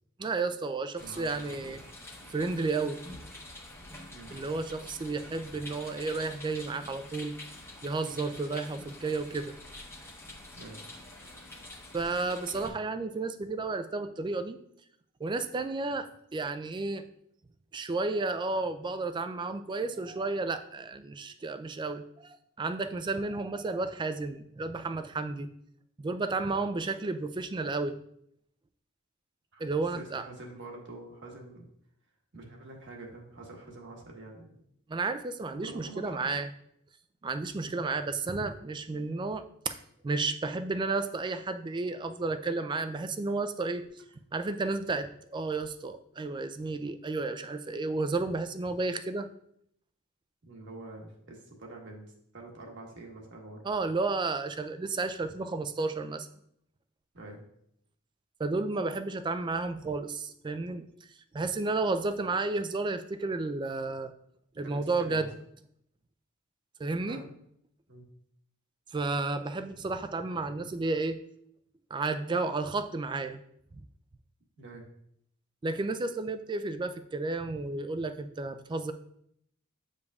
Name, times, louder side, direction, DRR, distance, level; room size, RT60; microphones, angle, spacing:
voice 1, 0.2-1.8 2.3-3.0 4.3-7.3 7.8-9.5 11.9-14.6 15.2-17.0 17.7-25.5 26.0-28.0 29.6-30.2 34.9-36.5 37.2-39.8 40.0-43.9 44.3-49.3 53.6-56.3 58.4-60.9 61.3-64.1 64.6-65.3 66.8-67.2 68.9-71.2 71.9-73.4 75.6-78.9, right 3 dB, 20° right, 10 dB, 0.3 m, -32 dB
sound 1, 1.0-12.7, left 1 dB, 10° left, 0.9 m, -47 dB
voice 2, 1.0-1.9 4.1-4.3 10.5-10.8 29.5-31.7 32.3-34.5 35.5-36.3 37.6-37.8 50.4-53.6 57.1-57.4 64.5-65.3 67.0-67.2 67.9-68.0 74.6-74.8, right 2 dB, 55° right, 0 dB, 1.3 m, -46 dB
8.2 x 5.2 x 2.3 m, 0.71 s
head